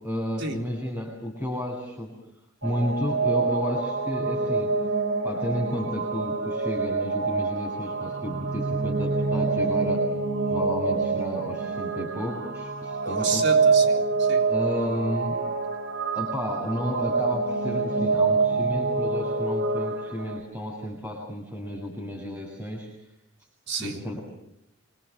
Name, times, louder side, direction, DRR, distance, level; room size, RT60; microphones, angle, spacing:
voice 1, 0.0-2.2 2.6-4.8 5.2-10.0 10.5-13.4 14.5-15.4 16.1-22.9 23.8-24.2, equal, 10° right, 7.1 m, -32 dB
sound 1, 2.6-20.4, right 4 dB, 75° right, 3.1 m, -26 dB
voice 2, 13.0-14.5 23.7-24.0, right 4 dB, 60° right, 3.9 m, -31 dB
26.5 x 26.0 x 7.5 m
head